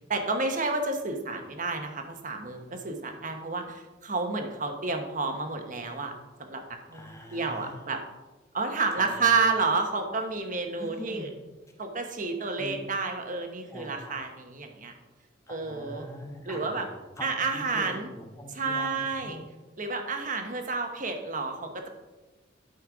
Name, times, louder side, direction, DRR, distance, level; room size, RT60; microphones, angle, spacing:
voice 1, 0.1-6.1 6.4-6.6 6.9-8.0 8.5-11.3 11.8-14.9 15.5-16.1 16.5-16.9 17.2-18.1 18.5-19.4 19.8-21.9, right 4 dB, 45° right, 4 dB, 1.1 m, -30 dB
voice 2, 6.9-7.8 8.9-9.3 10.8-11.3 12.6-12.8 13.7-14.2 15.5-19.4, equal, 15° left, 1 dB, 1.3 m, -43 dB
11.5 x 4.5 x 4.9 m, 1.2 s
head